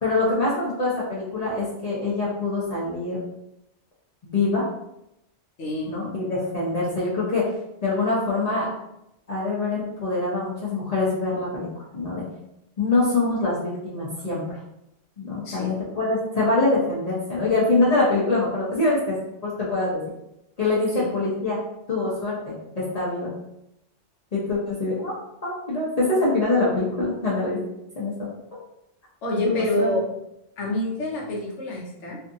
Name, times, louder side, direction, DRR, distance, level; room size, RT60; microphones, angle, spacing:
voice 1, 0.0-3.2 4.2-4.6 5.9-7.5 7.8-8.7 9.3-11.7 11.9-12.2 12.8-14.4 15.2-19.2 19.4-20.0 20.6-21.6 21.9-23.3 24.3-25.1 25.4-27.6 28.0-28.3 29.4-29.9, left 2 dB, 40° left, -8 dB, 0.6 m, -24 dB
voice 2, 5.6-6.0 15.4-15.9 20.9-21.1 29.2-30.0 30.6-32.2, left 1 dB, 80° left, -2 dB, 1.0 m, -27 dB
2.6 x 2.4 x 2.5 m, 0.84 s
omnidirectional pair, 1.2 m